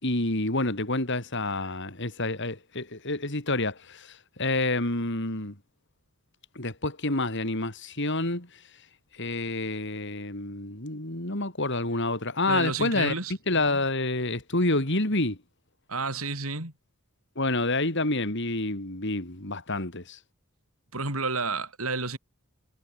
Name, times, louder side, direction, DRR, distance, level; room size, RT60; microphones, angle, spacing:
voice 1, 0.0-5.5 6.5-8.5 9.2-13.1 13.5-15.4 17.3-20.2, left 2 dB, 55° left, 5.0 m, -28 dB
voice 2, 12.5-13.3 15.9-16.7 20.9-22.2, right 3 dB, 80° right, 7.0 m, -30 dB
head